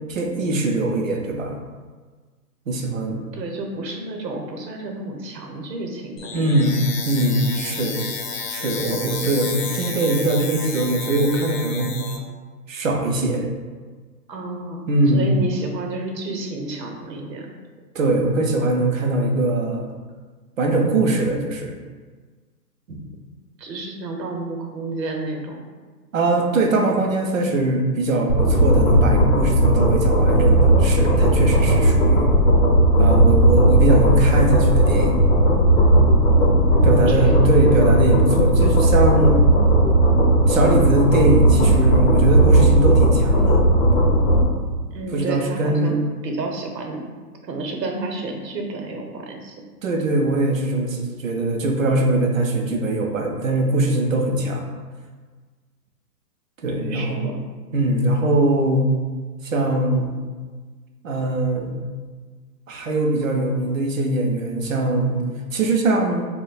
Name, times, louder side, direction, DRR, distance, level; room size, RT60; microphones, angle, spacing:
voice 1, 0.1-1.6 2.7-3.2 6.3-8.0 8.5-12.0 12.7-13.5 14.9-15.3 18.0-19.9 20.6-21.8 22.9-23.0 26.1-32.4 33.0-35.2 36.8-39.4 40.5-43.6 45.1-45.9 49.8-54.7 56.6-57.2 57.7-58.9 59.4-60.1 61.0-61.8 62.7-65.2 65.5-66.3, right 2 dB, 55° right, 2 dB, 0.5 m, -21 dB
voice 2, 3.3-6.6 14.3-17.5 23.6-25.6 36.7-37.4 44.9-47.0 47.4-49.6 56.7-57.4, right 2 dB, 80° right, 2 dB, 0.8 m, -31 dB
sound 1, 6.2-12.2, left 5 dB, 75° left, 0.7 m, -31 dB
sound 2, 28.3-44.4, right 1 dB, 40° left, 0.7 m, -16 dB
2.7 x 2.1 x 4.0 m, 1.4 s
hypercardioid pair, 170°, 50 cm